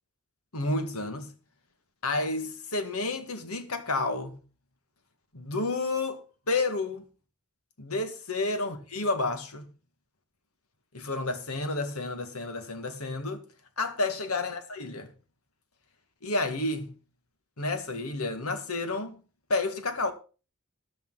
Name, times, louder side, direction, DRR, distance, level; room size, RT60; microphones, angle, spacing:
voice 1, 0.5-1.3 2.0-4.4 5.3-7.1 7.8-9.7 10.9-13.4 13.8-15.1 16.2-16.9 17.6-19.2 19.5-20.1, left 2 dB, 80° left, 1.9 m, -30 dB
14.0 x 10.0 x 4.0 m
head